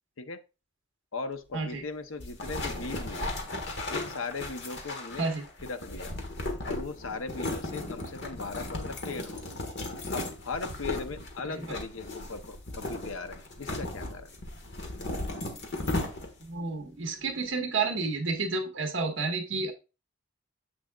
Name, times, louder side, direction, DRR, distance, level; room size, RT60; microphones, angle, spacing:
voice 1, 1.1-3.3 3.9-5.3 5.6-6.1 6.7-9.4 10.1-14.3, left 4 dB, 80° left, 9 dB, 0.8 m, -38 dB
sound 1, 2.2-16.5, left 2 dB, 60° left, 1.4 m, -36 dB
voice 2, 16.4-19.7, right 4 dB, 65° right, 3 dB, 1.5 m, -30 dB
7.5 x 6.1 x 2.3 m, 0.30 s
head